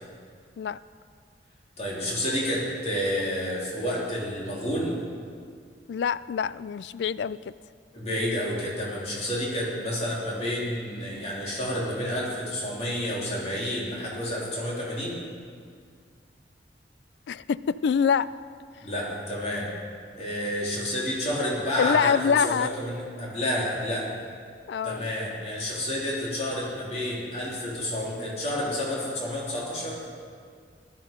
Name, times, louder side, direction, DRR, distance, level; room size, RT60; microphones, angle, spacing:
voice 1, 1.8-5.0 7.9-15.2 18.8-19.7 20.2-22.2 22.4-24.1 24.8-30.0, left 1 dB, 35° left, -4 dB, 3.1 m, -30 dB
voice 2, 5.9-7.4 17.3-18.3 21.8-22.7 24.7-25.1, left 6 dB, 80° left, 18 dB, 0.3 m, -25 dB
16.0 x 12.0 x 5.2 m, 2.1 s
head